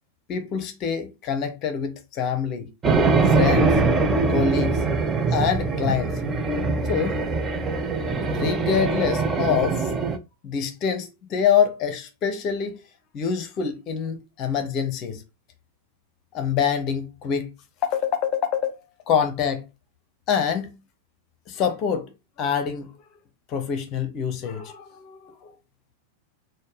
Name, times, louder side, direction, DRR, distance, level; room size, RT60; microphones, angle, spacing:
voice 1, 0.3-2.7 3.3-3.7 4.3-4.8 5.3-6.2 6.9-7.2 8.3-9.9 10.4-12.8 13.1-15.2 16.3-17.5 17.8-18.8 19.1-19.6 20.3-20.7 21.5-22.1 22.4-22.9 23.5-25.5, left 7 dB, 35° left, 0.7 m, -25 dB
sound 1, 2.8-10.2, right 4 dB, 20° right, 0.6 m, -22 dB
4.2 x 2.2 x 3.2 m
figure-of-eight pair, 90°, 0 cm